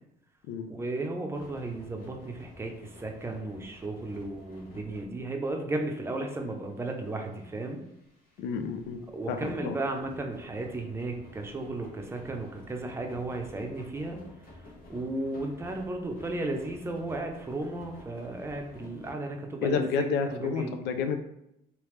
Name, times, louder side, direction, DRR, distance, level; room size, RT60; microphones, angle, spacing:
voice 1, 0.7-7.8 9.1-14.2 14.9-20.7, right 2 dB, 15° right, 2 dB, 0.6 m, -34 dB
sound 1, 1.3-19.1, left 2 dB, 55° left, 1.3 m, -52 dB
voice 2, 8.4-9.0 9.3-9.8 19.6-21.2, left 6 dB, 85° left, 7 dB, 0.5 m, -30 dB
3.3 x 2.9 x 3.2 m, 0.82 s
cardioid pair, 110°, 17 cm